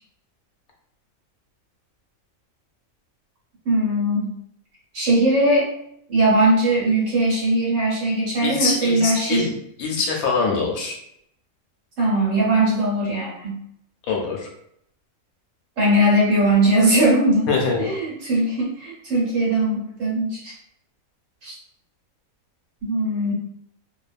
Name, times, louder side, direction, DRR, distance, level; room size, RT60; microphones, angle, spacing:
voice 1, 3.6-4.4 4.9-5.7 6.1-9.5 12.0-13.6 15.8-17.5 17.8-20.5 21.4-21.5 22.8-23.3, right 1 dB, 65° right, -5 dB, 1.3 m, -20 dB
voice 2, 8.4-11.0 14.0-14.5 17.5-17.9, left 4 dB, 75° left, -1 dB, 1.1 m, -24 dB
2.8 x 2.2 x 2.4 m, 0.74 s
omnidirectional pair, 1.5 m